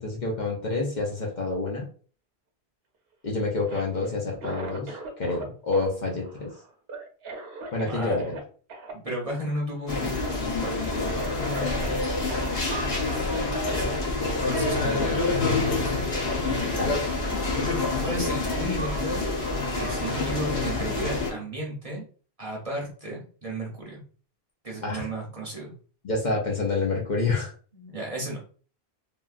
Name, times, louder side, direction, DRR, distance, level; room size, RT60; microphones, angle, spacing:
voice 1, 0.0-1.9 3.2-6.5 7.7-8.4 16.8-17.0 24.8-25.1 26.0-27.5, left 3 dB, 50° left, -1 dB, 0.8 m, -28 dB
Cough, 3.5-5.5 5.7-8.4 8.7-8.9 9.3-9.4 9.7-10.3 10.7-10.8 11.1-12.9 13.6-13.8, right 3 dB, 70° right, 0.9 m, -40 dB
voice 2, 7.8-8.4 8.9-10.3 10.6-10.8 13.3-13.5 14.5-15.5 18.0-19.3 19.7-22.0 22.4-24.0 24.6-25.7 27.7-28.4, right 1 dB, 35° right, -2 dB, 0.8 m, -34 dB
sound 1, 9.9-21.3, left 3 dB, 90° left, 1.2 m, -27 dB
3.4 x 2.3 x 2.4 m, 0.41 s
omnidirectional pair, 1.1 m